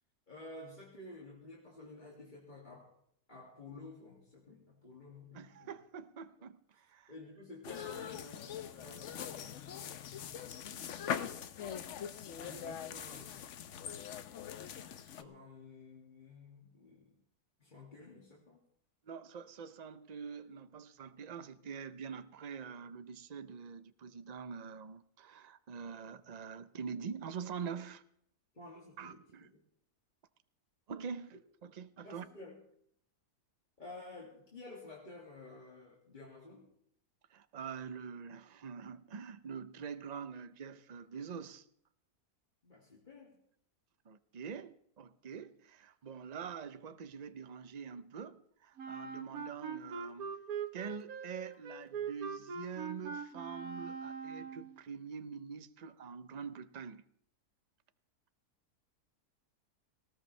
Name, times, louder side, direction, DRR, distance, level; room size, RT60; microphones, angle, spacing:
voice 1, 0.3-2.9 3.3-5.7 7.1-10.9 12.4-13.5 15.0-17.2 17.6-18.6 28.5-29.6 32.0-32.6 33.8-36.7 42.6-43.4, left 2 dB, 30° left, 2.4 m, -52 dB
voice 2, 5.3-7.1 19.1-28.0 29.0-29.5 30.9-32.2 37.3-41.7 44.1-50.3 50.7-57.0, right 6 dB, 45° right, 0.5 m, -45 dB
sound 1, 7.6-15.2, left 8 dB, 60° left, 1.0 m, -42 dB
Wind instrument woodwind instrument, 48.8-54.8, right 6 dB, 70° right, 1.4 m, -42 dB
19.0 x 18.0 x 3.2 m
omnidirectional pair, 1.6 m